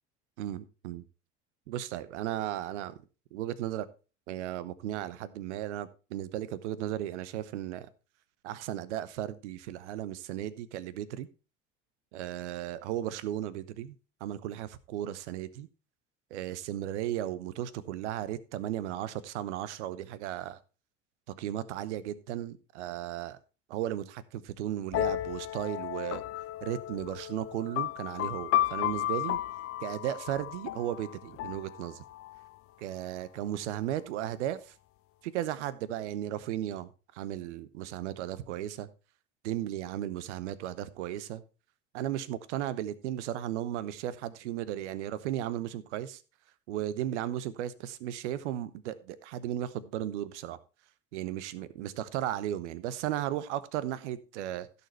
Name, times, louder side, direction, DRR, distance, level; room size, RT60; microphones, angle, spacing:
voice 1, 0.4-1.0 1.7-3.0 3.3-3.9 4.3-7.9 8.4-11.3 12.1-15.7 16.3-20.6 21.4-23.4 23.7-26.2 26.6-29.4 29.8-32.0 32.8-34.7 35.2-38.9 39.4-41.4 41.9-46.2 46.7-50.6 51.1-54.7, right 12 dB, 65° right, 1.0 m, -35 dB
sound 1, 24.9-32.5, left 13 dB, 40° left, 0.6 m, -33 dB
16.0 x 6.9 x 3.2 m
figure-of-eight pair, 65°, 37 cm